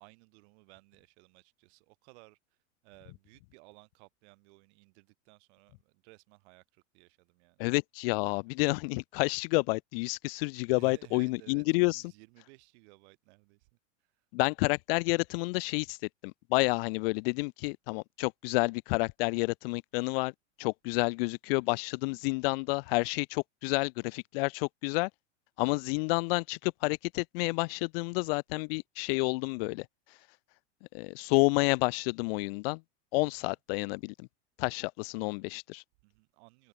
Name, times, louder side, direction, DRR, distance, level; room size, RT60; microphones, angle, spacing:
voice 1, 0.0-2.4 2.8-7.6 10.7-13.7 33.2-33.5 36.0-36.7, right 27 dB, 60° right, 2.3 m, -58 dB
voice 2, 7.6-12.0 14.3-16.0 16.2-20.3 20.6-25.1 25.6-29.9 30.9-32.8 33.1-34.3 34.6-35.8, left 27 dB, 50° left, 0.5 m, -29 dB
hypercardioid pair, 105°, 38 cm